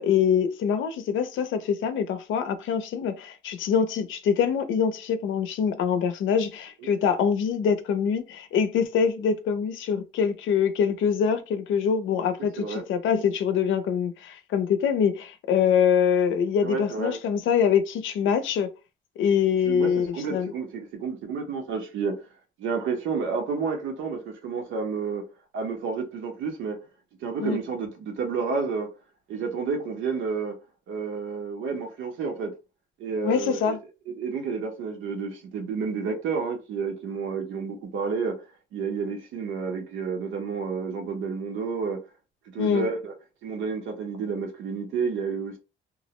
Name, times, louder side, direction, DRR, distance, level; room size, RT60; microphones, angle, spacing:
voice 1, 0.0-18.7 19.2-20.5 27.4-27.6 33.2-33.8 42.6-42.9, left 7 dB, 80° left, 0.5 m, -24 dB
voice 2, 16.6-17.2 19.6-22.3 22.6-25.2 25.5-26.8 27.2-28.9 29.3-30.5 30.9-32.5 33.0-33.8 34.1-38.4 38.7-42.0 42.5-43.1 43.4-45.6, right 5 dB, 85° right, 0.9 m, -30 dB
2.4 x 2.0 x 3.0 m
cardioid pair, 90°, 20 cm